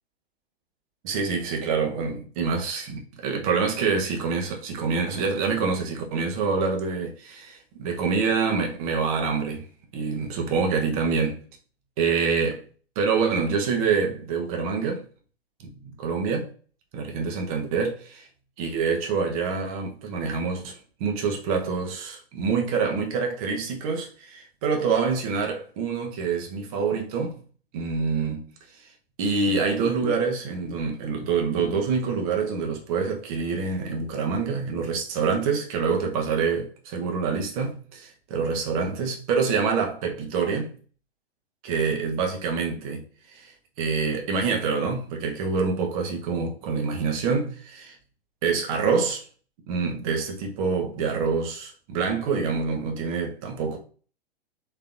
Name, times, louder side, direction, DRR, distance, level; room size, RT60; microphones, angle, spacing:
voice 1, 1.0-9.7 9.9-11.4 12.0-12.6 13.0-15.0 15.8-16.5 16.9-18.3 18.6-27.3 27.7-28.5 29.2-40.7 41.6-43.0 43.3-43.5 43.8-47.9 48.4-49.2 49.7-53.8, right 5 dB, 35° right, 1.0 m, -26 dB
3.8 x 3.3 x 2.6 m
figure-of-eight pair, 110°, 31 cm